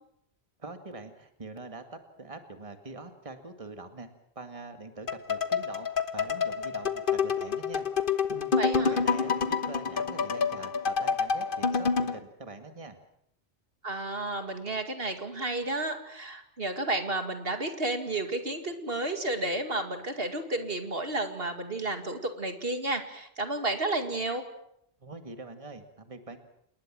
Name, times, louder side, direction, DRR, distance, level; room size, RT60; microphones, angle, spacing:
voice 1, 0.6-4.1 4.4-5.9 6.1-7.8 8.3-8.5 8.8-13.0 25.0-26.4, right 3 dB, 30° right, 7 dB, 2.1 m, -44 dB
sound 1, 5.1-12.2, left 6 dB, 50° left, 1.4 m, -28 dB
voice 2, 8.6-9.0 13.8-24.5, right 2 dB, 60° right, 7 dB, 2.5 m, -32 dB
29.0 x 20.0 x 7.6 m, 0.74 s
omnidirectional pair, 1.1 m